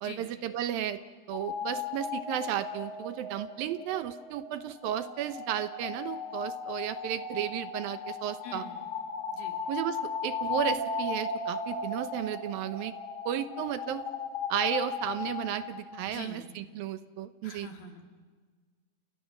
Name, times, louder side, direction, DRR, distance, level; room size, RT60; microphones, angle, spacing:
voice 1, 0.0-1.0 1.3-8.7 9.7-12.9 13.3-14.0 14.5-17.7, right 11 dB, 75° right, 11 dB, 2.6 m, -33 dB
sound 1, 1.3-16.0, left 4 dB, 25° left, 3.4 m, -36 dB
voice 2, 8.4-8.9 9.3-9.6 16.0-16.6 17.4-18.2, left 4 dB, 75° left, 3 dB, 4.4 m, -45 dB
30.0 x 28.5 x 6.2 m, 1.5 s
omnidirectional pair, 4.5 m